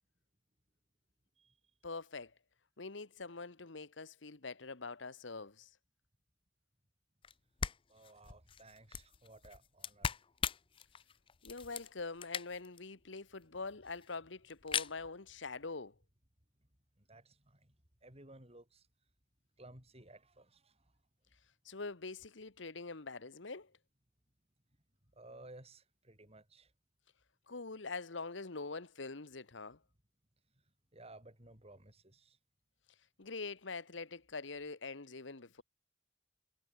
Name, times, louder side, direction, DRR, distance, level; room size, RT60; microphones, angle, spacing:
voice 1, 1.8-2.3 2.8-5.7 11.4-15.9 21.6-23.7 27.5-29.8 33.2-35.6, left 3 dB, 75° left, 1.4 m, -44 dB
sound 1, 7.2-7.3 7.6-12.8 13.2-13.3 13.4-13.5 13.7-14.2 14.5-14.9, left 7 dB, 30° left, 0.5 m, -40 dB
voice 2, 7.9-10.2 17.0-17.7 18.0-18.9 19.6-20.9 25.1-26.7 30.9-32.4, right 2 dB, 35° right, 6.4 m, -57 dB
head